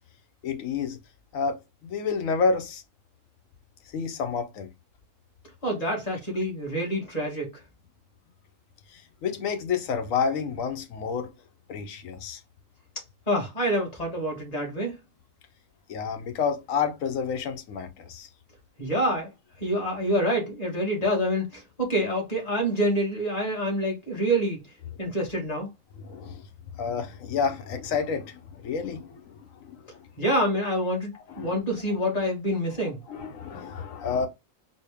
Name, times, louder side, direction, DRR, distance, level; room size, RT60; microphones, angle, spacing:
voice 1, 0.4-1.0 1.3-2.8 3.9-4.7 8.9-11.3 11.7-12.4 15.9-18.3 18.8-18.9 26.0-26.4 26.8-30.0 31.3-31.5 33.1-34.3, left 5 dB, 75° left, 1.1 m, -29 dB
voice 2, 5.6-7.5 13.3-15.0 18.8-19.3 19.6-24.6 25.0-25.7 30.2-33.0, equal, 30° left, 1.5 m, -27 dB
4.2 x 2.0 x 3.4 m
omnidirectional pair, 1.4 m